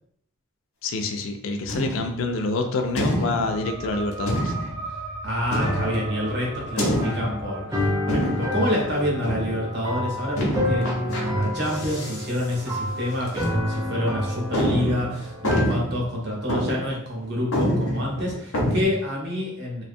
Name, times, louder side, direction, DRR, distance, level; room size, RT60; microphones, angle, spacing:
voice 1, 0.8-4.5, left 3 dB, 65° left, 5 dB, 0.3 m, -27 dB
sound 1, 1.7-2.2 3.0-3.6 4.3-4.8 5.5-6.1 6.8-7.4 8.1-8.7 9.2-9.6 10.4-11.2 11.6-12.2 12.5-12.6 13.3-13.4 13.9-14.0 14.5-16.1 16.5-16.9 17.2-17.3 17.5-18.8, equal, 85° left, 0.7 m, -26 dB
sound 2, 2.3-13.4, right 3 dB, 85° right, 0.6 m, -40 dB
voice 2, 5.2-19.9, equal, 50° right, -2 dB, 0.7 m, -28 dB
sound 3, 5.5-15.6, left 1 dB, 15° right, 0.3 m, -29 dB
2.5 x 2.2 x 2.6 m, 0.67 s
head